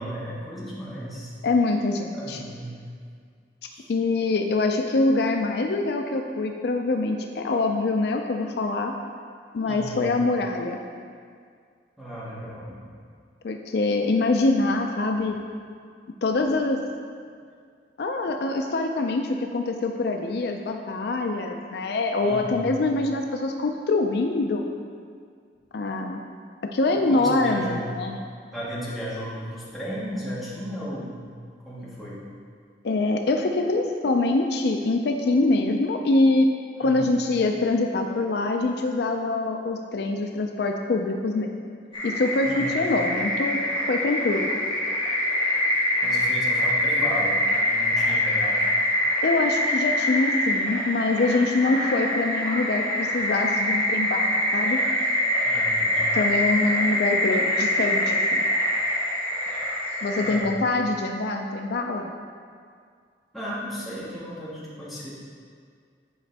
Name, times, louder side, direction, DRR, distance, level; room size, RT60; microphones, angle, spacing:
voice 1, 0.0-1.3 2.1-2.8 3.7-3.8 9.6-10.0 12.0-12.7 22.2-22.7 27.1-27.8 28.5-31.2 31.6-32.2 36.8-37.1 42.4-42.8 46.0-48.8 55.4-56.1 60.2-60.5 63.3-65.1, equal, ahead, -10 dB, 1.7 m, -35 dB
voice 2, 1.4-2.4 3.9-8.9 9.5-10.8 13.4-15.4 16.2-16.9 18.0-24.6 25.7-26.2 26.7-28.2 32.8-36.5 36.8-41.5 42.0-43.6 43.9-44.5 49.2-54.8 56.1-58.5 60.0-62.1, left 2 dB, 65° left, 3 dB, 0.4 m, -24 dB
sound 1, 41.9-60.4, left 1 dB, 30° left, 1.3 m, -24 dB
9.6 x 5.0 x 3.4 m, 2.1 s
head